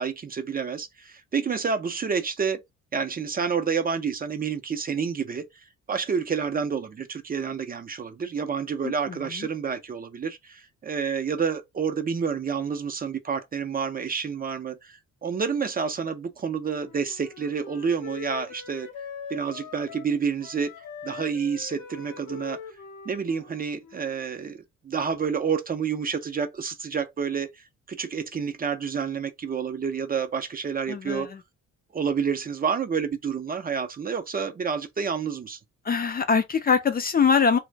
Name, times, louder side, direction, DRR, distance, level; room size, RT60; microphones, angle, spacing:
voice 1, 0.0-2.6 2.9-5.4 5.9-18.9 19.3-20.7 21.0-22.6 23.1-31.3 31.9-35.6, right 6 dB, 30° right, 0.5 m, -29 dB
voice 2, 8.8-9.5 30.9-31.3 35.8-37.6, left 6 dB, 30° left, 0.4 m, -23 dB
Wind instrument woodwind instrument, 16.6-20.2 20.4-24.3, left 7 dB, 70° left, 0.8 m, -42 dB
2.4 x 2.0 x 3.2 m
cardioid pair, 90°, 30 cm